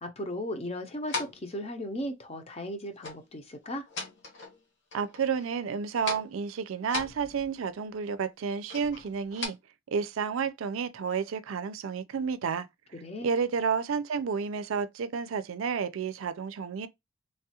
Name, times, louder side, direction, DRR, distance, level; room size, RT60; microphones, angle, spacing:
voice 1, 0.0-3.8 12.9-13.3, left 1 dB, 30° left, 0.6 m, -36 dB
sound 1, 1.1-1.5 3.0-3.3 3.6-4.6 4.9-5.6 5.9-6.4 6.8-7.7 8.7-9.5, left 3 dB, 60° left, 1.1 m, -38 dB
voice 2, 4.9-9.6 9.9-12.7 13.2-16.9, right 6 dB, 85° right, 0.4 m, -31 dB
3.2 x 2.3 x 2.8 m
head